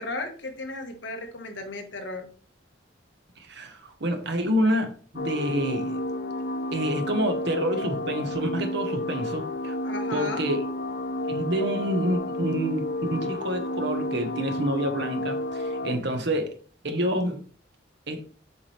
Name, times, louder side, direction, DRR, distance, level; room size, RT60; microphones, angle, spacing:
voice 1, 0.0-2.3 9.8-10.5, left 2 dB, 70° left, 1.5 m, -35 dB
voice 2, 3.4-6.0 6.7-9.7 10.1-10.6 11.3-16.5 16.8-17.4 18.1-18.2, equal, 60° right, 1.2 m, -28 dB
sound 1, 5.2-16.0, left 1 dB, 50° left, 0.7 m, -31 dB
7.1 x 4.8 x 3.3 m
head